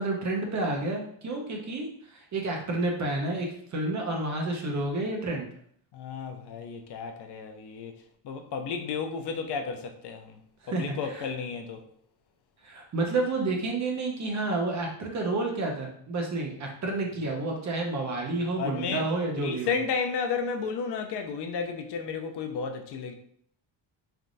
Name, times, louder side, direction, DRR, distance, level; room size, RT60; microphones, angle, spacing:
voice 1, 0.0-5.5 10.6-11.3 12.6-19.8, right 2 dB, 35° right, 0.8 m, -30 dB
voice 2, 5.9-7.9 8.2-10.4 10.7-11.8 18.6-19.0 19.4-23.1, left 5 dB, 60° left, 0.6 m, -32 dB
4.2 x 3.4 x 2.6 m
cardioid pair, 165°, 47 cm